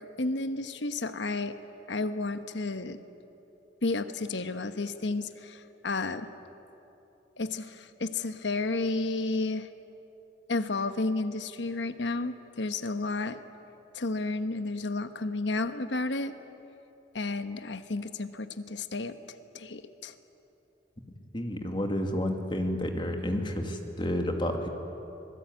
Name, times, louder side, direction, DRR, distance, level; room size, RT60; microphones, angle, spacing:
voice 1, 0.2-1.6 1.9-3.0 3.8-6.3 7.4-9.7 10.5-13.4 13.9-16.3 17.1-19.2 19.5-20.1, left 3 dB, 85° left, 10 dB, 1.2 m, -32 dB
voice 2, 21.3-24.7, left 1 dB, 25° left, 4 dB, 2.4 m, -30 dB
26.0 x 20.5 x 9.5 m, 2.9 s
head